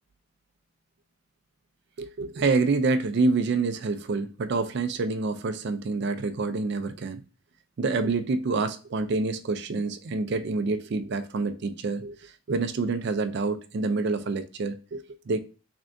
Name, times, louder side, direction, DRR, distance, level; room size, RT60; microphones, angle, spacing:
voice 1, 2.0-7.2 7.8-15.4, right 3 dB, 55° right, 0.4 m, -27 dB
3.7 x 3.3 x 2.5 m
head